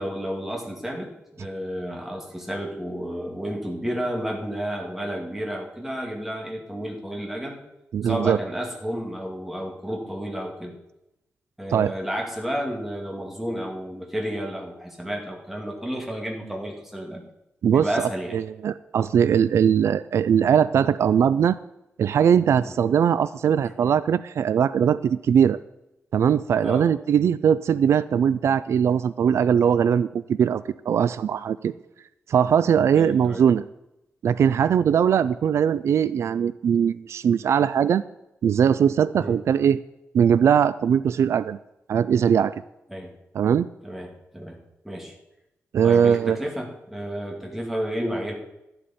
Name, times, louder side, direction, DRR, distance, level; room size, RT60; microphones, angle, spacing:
voice 1, 0.0-7.6 8.0-10.7 11.6-17.2 17.7-18.4 22.6-22.7 23.6-23.7 26.6-26.9 32.9-33.4 39.2-39.4 42.9-43.1 43.8-44.6 44.8-45.1 45.8-48.3, equal, 5° right, 0 dB, 2.1 m, -31 dB
voice 2, 7.9-8.4 11.7-11.9 17.6-21.6 22.0-25.6 26.1-31.7 32.3-33.7 34.2-38.0 38.4-39.8 40.1-41.6 41.9-42.5 43.3-43.7 45.7-46.4, right 8 dB, 75° right, 16 dB, 0.3 m, -20 dB
12.5 x 11.0 x 4.2 m, 0.90 s
wide cardioid pair, 155°, 5 cm